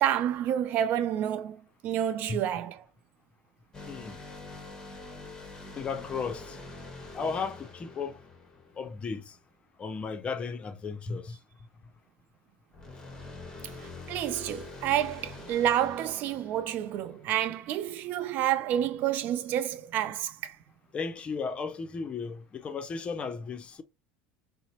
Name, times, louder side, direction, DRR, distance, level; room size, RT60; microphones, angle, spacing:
voice 1, 0.0-2.8 13.6-20.6, right 11 dB, 55° right, 0.4 m, -29 dB
sound 1, 3.7-9.2 12.7-17.5, left 3 dB, 15° left, 1.1 m, -45 dB
voice 2, 3.9-4.2 5.8-6.6 7.1-8.2 8.8-9.4 9.8-11.4 20.9-23.8, left 5 dB, 30° left, 0.6 m, -35 dB
4.0 x 2.0 x 2.8 m
hypercardioid pair, 90°, 4 cm